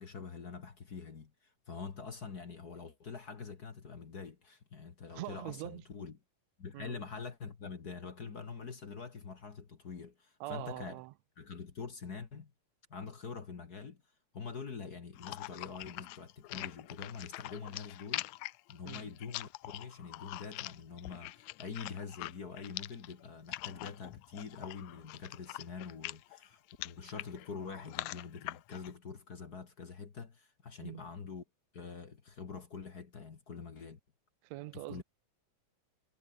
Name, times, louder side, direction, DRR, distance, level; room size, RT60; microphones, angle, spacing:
voice 1, 0.0-6.2 6.6-11.0 11.4-12.5 12.9-14.0 14.3-18.3 18.7-31.4 31.7-34.0 34.7-35.0, left 5 dB, 40° left, 1.6 m, -45 dB
voice 2, 5.1-5.8 6.7-7.0 10.4-11.1 18.8-19.0 30.8-31.1 34.4-35.0, right 18 dB, 85° right, 1.5 m, -43 dB
sound 1, 15.2-28.9, left 19 dB, 85° left, 1.7 m, -44 dB
omnidirectional pair, 3.9 m